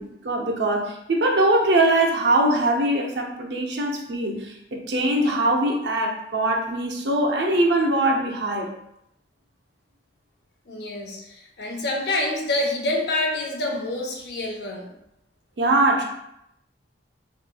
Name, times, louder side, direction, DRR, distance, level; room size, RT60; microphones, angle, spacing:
voice 1, 0.0-8.7 15.6-16.0, right 1 dB, 70° right, 1 dB, 0.6 m, -22 dB
voice 2, 10.7-14.9, left 2 dB, 65° left, -1 dB, 0.7 m, -27 dB
4.1 x 3.0 x 2.2 m, 0.80 s
head